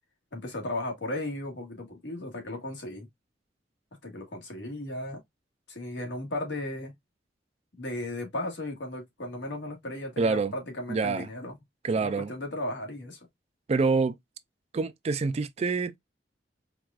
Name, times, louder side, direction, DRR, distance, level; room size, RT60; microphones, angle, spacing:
voice 1, 0.3-3.1 4.0-5.2 5.7-6.9 7.8-11.6 11.9-13.2, left 1 dB, 90° left, 1.6 m, -35 dB
voice 2, 10.2-10.5 10.9-11.3 11.8-12.3 13.7-14.2 14.7-16.0, right 4 dB, 35° right, 0.3 m, -26 dB
4.6 x 2.4 x 2.3 m
head